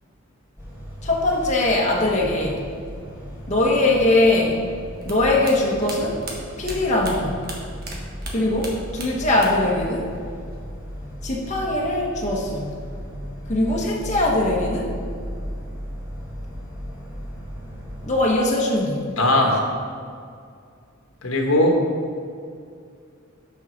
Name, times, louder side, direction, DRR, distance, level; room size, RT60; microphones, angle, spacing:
sound 1, 0.6-18.3, equal, 15° right, 2.0 m, -36 dB
voice 1, 1.0-2.6 3.5-4.6 5.0-6.2 6.6-7.4 8.3-10.1 11.2-12.8 13.5-14.9 18.1-19.1, left 2 dB, 35° left, -3 dB, 1.2 m, -21 dB
sound 2, 5.0-8.0 8.2-9.7 10.0-10.8, right 3 dB, 50° right, 1.4 m, -37 dB
voice 2, 19.2-19.6 21.2-21.8, left 1 dB, 85° left, 0 dB, 1.3 m, -18 dB
6.3 x 5.7 x 6.5 m, 2.2 s
head